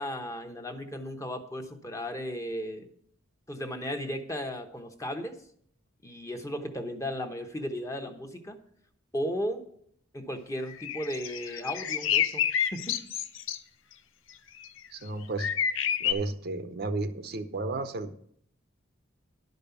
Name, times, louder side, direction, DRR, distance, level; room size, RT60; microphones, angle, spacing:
voice 1, 0.0-2.9 3.5-5.4 6.0-8.6 9.1-9.6 10.1-13.0, equal, 15° left, 4 dB, 0.9 m, -35 dB
sound 1, 10.7-13.6 14.6-14.8 15.4-16.1, left 9 dB, 65° left, 0.5 m, -29 dB
voice 2, 14.9-15.5 16.0-18.2, right 3 dB, 50° right, 9 dB, 0.7 m, -33 dB
11.0 x 5.3 x 6.9 m, 0.64 s
head